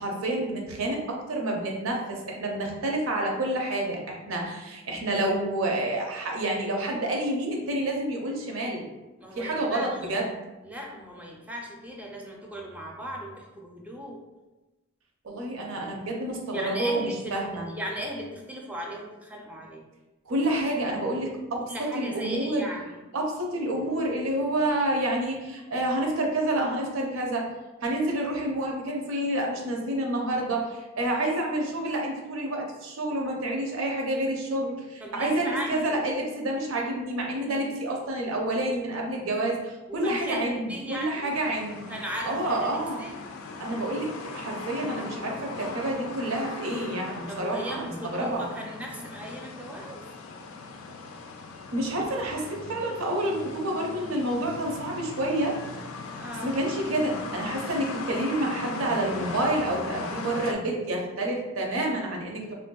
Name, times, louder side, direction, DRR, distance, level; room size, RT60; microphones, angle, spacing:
voice 1, 0.0-8.9 9.4-10.3 15.2-17.7 20.3-21.6 21.9-22.6 23.1-27.5 27.8-41.8 42.3-43.1 43.6-48.5 51.7-55.6 56.4-62.5, right 1 dB, 75° right, 0 dB, 0.6 m, -28 dB
voice 2, 9.2-9.9 10.6-14.2 16.5-19.9 21.7-23.0 35.0-36.0 39.9-41.4 41.9-43.1 47.3-50.0 56.2-56.5, equal, 5° right, -1 dB, 0.4 m, -37 dB
sound 1, 41.3-60.5, left 3 dB, 75° left, 0.3 m, -39 dB
3.4 x 2.5 x 2.2 m, 1.1 s
head